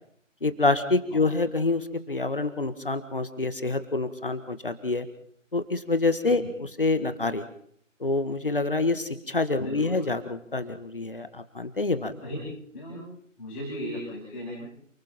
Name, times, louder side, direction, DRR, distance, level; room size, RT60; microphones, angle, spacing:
voice 1, 0.4-5.1 5.5-6.4 6.8-7.5 8.0-12.1, left 3 dB, 45° left, 11 dB, 1.7 m, -27 dB
voice 2, 9.6-10.0 12.2-12.4 12.7-13.0 13.4-14.6, equal, 10° left, -7 dB, 6.3 m, -36 dB
29.0 x 21.5 x 4.4 m, 0.63 s
figure-of-eight pair, 160°, 39 cm